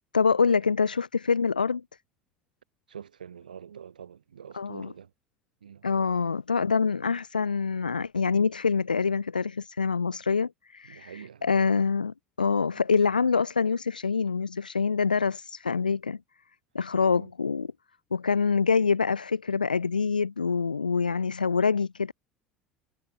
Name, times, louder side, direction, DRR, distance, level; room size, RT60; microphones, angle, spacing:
voice 1, 0.1-1.8 4.5-4.9 5.8-16.2 16.7-17.7 18.1-22.1, left 5 dB, 90° left, 0.4 m, -25 dB
voice 2, 2.9-5.1 5.6-5.9 10.8-11.6 12.7-12.8 17.1-17.3 20.7-20.8, right 8 dB, 80° right, 2.5 m, -46 dB
figure-of-eight pair, 65°, 4 cm